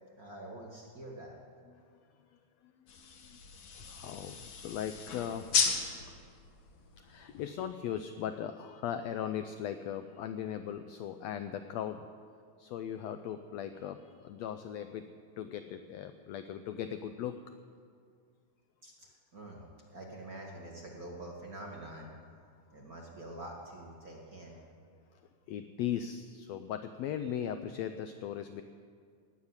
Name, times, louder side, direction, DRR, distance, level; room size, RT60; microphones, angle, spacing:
voice 1, 0.2-1.3 18.8-19.6 19.9-22.1 22.7-24.6, right 1 dB, 40° right, -2 dB, 1.5 m, -46 dB
sound 1, 2.9-7.7, left 5 dB, 55° left, 1.8 m, -36 dB
voice 2, 3.8-5.5 5.9-6.0 7.0-12.1 12.6-15.1 15.4-17.4 25.5-28.6, left 9 dB, 80° left, 9 dB, 1.5 m, -38 dB
17.5 x 7.3 x 9.7 m, 2.1 s
omnidirectional pair, 3.6 m